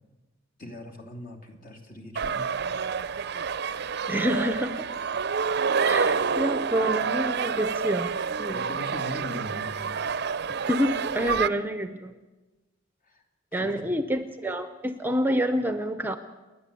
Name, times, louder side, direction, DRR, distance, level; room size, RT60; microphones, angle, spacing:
voice 1, 0.6-2.5 8.5-10.0 13.1-13.2 13.6-13.9, equal, 45° left, 3 dB, 2.8 m, -40 dB
sound 1, 2.2-11.5, right 6 dB, 60° right, 0.6 m, -28 dB
voice 2, 4.1-4.9 5.8-8.6 10.6-12.1 13.5-16.2, equal, 10° right, 9 dB, 0.7 m, -28 dB
28.5 x 11.0 x 8.4 m, 1.2 s
head